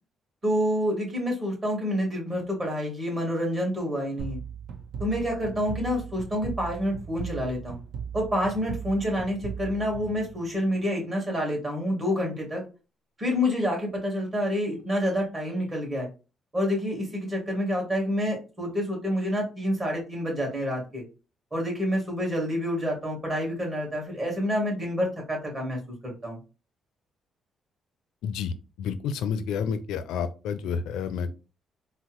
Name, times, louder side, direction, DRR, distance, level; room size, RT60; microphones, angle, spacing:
voice 1, 0.4-4.4 5.0-7.8 8.1-12.6 13.2-16.1 16.5-21.0 21.5-26.4, equal, 30° right, 0 dB, 1.9 m, -28 dB
sound 1, 4.2-10.8, right 7 dB, 70° right, 0.6 m, -38 dB
voice 2, 28.2-31.4, left 6 dB, 85° left, 11 dB, 0.4 m, -30 dB
4.1 x 2.1 x 2.9 m, 0.32 s
cardioid pair, 90°, 0 cm